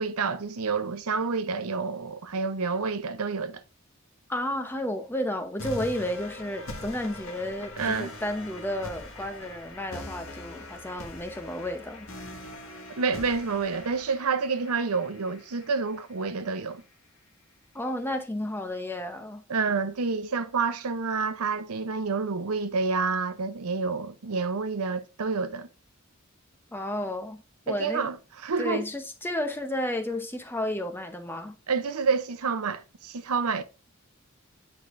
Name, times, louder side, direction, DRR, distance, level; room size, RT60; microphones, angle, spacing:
voice 1, 0.0-3.6 7.8-8.1 13.0-16.8 19.5-25.7 27.7-28.2 28.4-28.8 31.7-33.6, right 4 dB, 90° right, 0.7 m, -28 dB
voice 2, 4.3-12.4 17.7-19.4 26.7-28.1 28.6-31.6, left 1 dB, 10° left, 0.8 m, -32 dB
sound 1, 5.6-16.6, left 1 dB, 70° left, 1.7 m, -42 dB
8.6 x 4.6 x 2.5 m
head